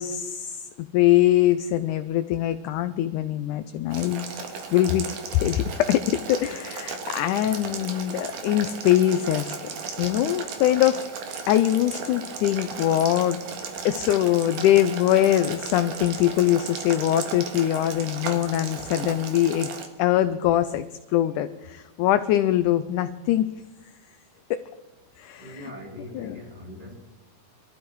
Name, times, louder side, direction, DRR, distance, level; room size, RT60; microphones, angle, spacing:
voice 1, 0.0-4.3 4.7-5.1 5.3-9.6 10.0-11.0 11.5-13.4 13.9-19.7 20.0-23.5 24.5-24.6 25.2-25.7 26.1-26.4, left 13 dB, 75° left, 10 dB, 1.9 m, -23 dB
Boiling, 3.9-19.9, right 5 dB, 65° right, 3.1 m, -35 dB
voice 2, 25.4-27.0, equal, 10° right, 0 dB, 3.1 m, -41 dB
21.5 x 14.0 x 4.7 m, 1.1 s
omnidirectional pair, 4.0 m